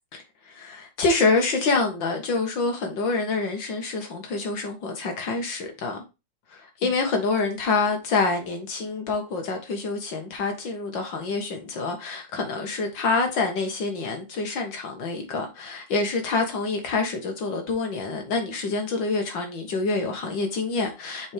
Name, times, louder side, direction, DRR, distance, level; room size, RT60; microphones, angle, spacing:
voice 1, 0.1-6.0 6.8-21.3, left 3 dB, 70° left, 2.3 m, -26 dB
6.5 x 4.6 x 3.4 m
omnidirectional pair, 2.1 m